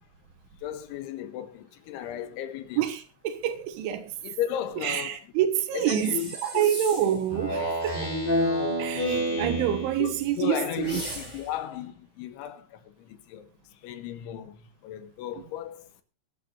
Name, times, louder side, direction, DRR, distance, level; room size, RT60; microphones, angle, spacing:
voice 1, 0.6-2.8 4.2-5.1 5.7-6.3 6.5-6.7 10.0-12.8 13.3-13.5 13.8-14.6 14.8-15.8, left 11 dB, 75° left, 3.4 m, -34 dB
voice 2, 2.8-4.1 4.8-8.1 8.8-11.0 15.3-15.4, right 10 dB, 75° right, 3.7 m, -27 dB
sound 1, 5.9-7.3 10.8-11.6, right 1 dB, 10° right, 4.6 m, -38 dB
Speech synthesizer, 7.3-10.3, equal, 10° left, 3.1 m, -28 dB
22.5 x 11.0 x 2.7 m
omnidirectional pair, 5.7 m